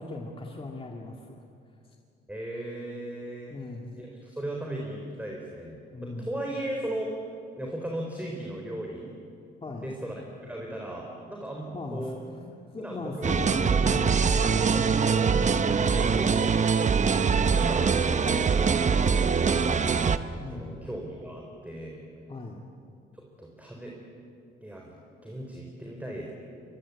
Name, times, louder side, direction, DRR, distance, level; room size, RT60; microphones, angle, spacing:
voice 1, 0.0-1.3 3.5-3.9 5.9-6.3 9.6-9.9 11.7-14.1 15.8-16.1 20.4-20.8 22.3-22.6, left 2 dB, 25° left, 1 dB, 2.3 m, -38 dB
voice 2, 2.3-3.5 4.0-7.3 7.6-9.1 9.8-12.2 12.8-14.0 14.6-15.6 15.9-16.4 17.1-20.1 20.5-22.0 23.1-23.9 24.6-26.3, right 1 dB, 5° right, -1 dB, 4.1 m, -37 dB
sound 1, 13.2-20.2, right 5 dB, 35° right, 1.0 m, -23 dB
24.5 x 22.0 x 8.5 m, 2.5 s
cardioid pair, 90°, 20 cm